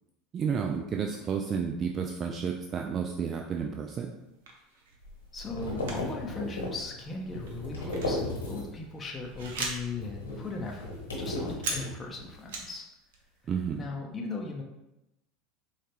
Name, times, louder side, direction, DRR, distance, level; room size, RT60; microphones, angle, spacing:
voice 1, 0.3-4.1 13.5-13.8, right 6 dB, 35° right, 2 dB, 0.3 m, -31 dB
sound 1, 4.3-5.0 5.8-6.2 6.4-6.6 7.0-10.0 10.4-10.5 10.7-12.8 13.1-13.6, right 3 dB, 70° right, 0.6 m, -39 dB
sound 2, 5.0-8.9 9.2-12.3, left 1 dB, 85° left, 1.1 m, -36 dB
voice 2, 5.3-10.9 11.2-12.9 13.8-14.6, left 3 dB, 20° left, 0 dB, 0.6 m, -38 dB
4.4 x 2.4 x 3.0 m, 0.93 s
hypercardioid pair, 80°, 0 cm